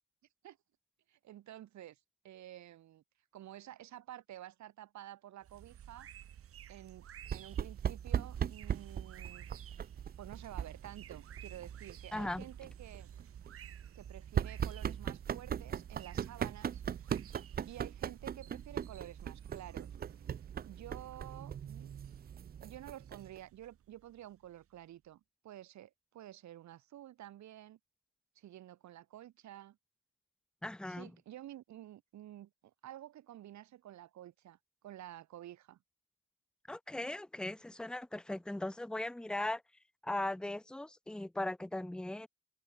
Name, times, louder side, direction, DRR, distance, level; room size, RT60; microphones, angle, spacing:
voice 1, 1.1-3.0 3.3-6.1 6.7-7.1 7.3-9.5 10.2-13.1 13.9-16.8 17.2-19.9 20.6-21.9 22.6-27.8 28.3-29.8 30.9-34.6 34.8-35.8, right 13 dB, 65° right, 3.0 m, -51 dB
sound 1, 5.4-24.8, right 10 dB, 45° right, 1.9 m, -55 dB
sound 2, 7.2-23.4, right 8 dB, 30° right, 0.7 m, -40 dB
voice 2, 12.1-12.4 30.6-31.1 36.7-39.6 40.0-42.3, left 1 dB, 5° left, 1.1 m, -38 dB
cardioid pair, 175°, 30 cm